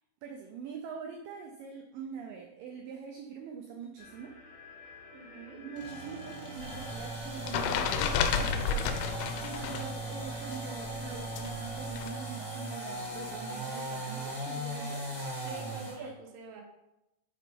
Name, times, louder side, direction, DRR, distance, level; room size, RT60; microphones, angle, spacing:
voice 1, 0.2-4.3 5.6-9.0 9.3-15.5 15.9-16.1, right 6 dB, 85° right, 2 dB, 1.9 m, -44 dB
sound 1, 4.0-11.5, left 3 dB, 55° left, 1.1 m, -52 dB
voice 2, 5.1-5.6 15.4-16.6, right 4 dB, 70° right, 2 dB, 2.3 m, -46 dB
sound 2, 5.7-16.0, right 1 dB, 25° left, 0.8 m, -38 dB
sound 3, 6.6-9.9 10.2-12.1, left 7 dB, 80° left, 2.3 m, -32 dB
7.0 x 4.5 x 5.1 m, 0.93 s
omnidirectional pair, 4.7 m